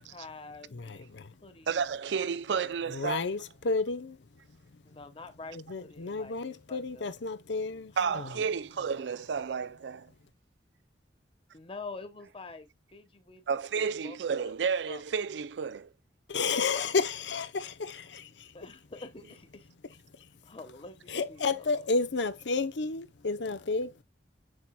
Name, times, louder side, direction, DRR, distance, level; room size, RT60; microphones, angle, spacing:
voice 1, 0.0-1.7 2.1-2.7 4.8-6.4 6.7-7.1 8.0-8.4 8.8-9.1 11.5-13.5 13.7-14.5 14.9-15.0 18.5-19.7 20.4-22.0, left 3 dB, 30° left, 1.2 m, -47 dB
voice 2, 0.7-1.3 2.9-4.2 5.5-8.3 16.3-18.5 21.1-24.0, left 4 dB, 85° left, 0.7 m, -31 dB
voice 3, 1.7-3.2 8.0-10.1 13.5-15.9, right 6 dB, 80° right, 0.4 m, -31 dB
7.4 x 6.1 x 2.2 m
head